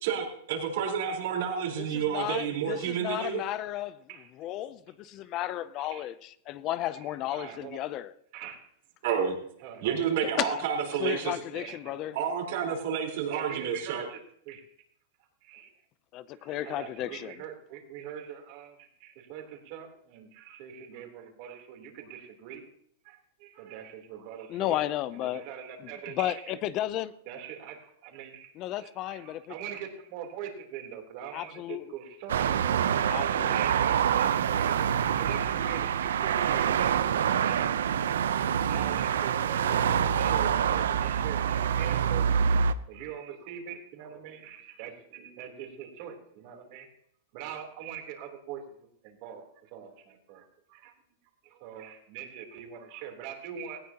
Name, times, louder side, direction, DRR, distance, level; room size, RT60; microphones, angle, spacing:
voice 1, 0.0-3.4 9.0-9.4 9.8-11.4 12.1-14.0, right 7 dB, 65° right, 4.3 m, -30 dB
voice 2, 1.8-4.0 4.4-8.1 10.4-10.6 11.0-12.2 16.1-17.3 24.5-25.4 26.2-27.1 28.6-29.5 31.3-31.8 33.1-33.6, left 13 dB, 35° left, 0.5 m, -33 dB
voice 3, 5.2-5.6 5.8-6.1 6.9-7.8 8.3-8.6 9.6-10.0 10.4-10.5 11.0-11.1 11.5-12.0 12.9-14.2 14.4-14.6 15.4-15.7 16.3-22.6 23.0-24.8 25.1-26.6 27.2-34.8 35.1-38.2 38.6-42.3 42.6-46.9 47.3-50.9 51.4-53.8, right 8 dB, 50° right, 3.4 m, -43 dB
sound 1, 32.3-42.7, right 8 dB, 90° right, 0.7 m, -26 dB
18.5 x 16.0 x 2.9 m
supercardioid pair, 140°, 0 cm